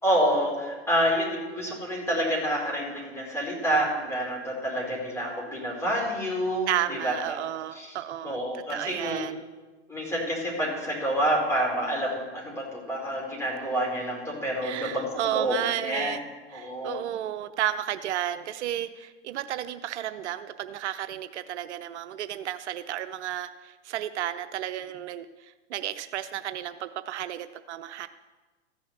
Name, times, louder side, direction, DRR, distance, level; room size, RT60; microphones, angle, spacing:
voice 1, 0.0-7.4 7.7-8.0 8.2-9.2 9.9-16.2 16.5-17.0, equal, 5° left, -4 dB, 4.5 m, -28 dB
voice 2, 6.7-9.4 14.6-16.2 16.5-28.1, right 12 dB, 70° right, 11 dB, 0.7 m, -32 dB
14.5 x 6.3 x 8.2 m, 1.3 s
hypercardioid pair, 125°, 35 cm